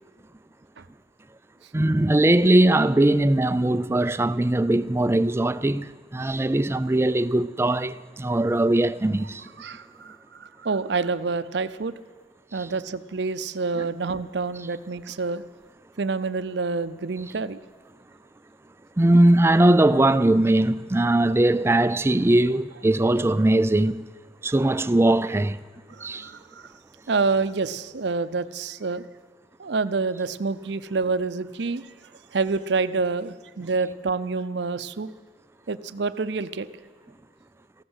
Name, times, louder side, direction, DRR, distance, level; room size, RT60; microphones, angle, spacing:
voice 1, 1.7-9.5 13.8-13.9 19.0-24.0 24.4-25.6 26.0-26.3, right 1 dB, 15° right, 0.4 m, -20 dB
voice 2, 9.6-11.9 12.5-15.4 16.0-17.6 25.9-26.7 27.1-29.0 29.6-31.9 32.3-35.1 35.7-36.7, right 4 dB, 65° right, 0.6 m, -27 dB
15.0 x 12.0 x 8.0 m
head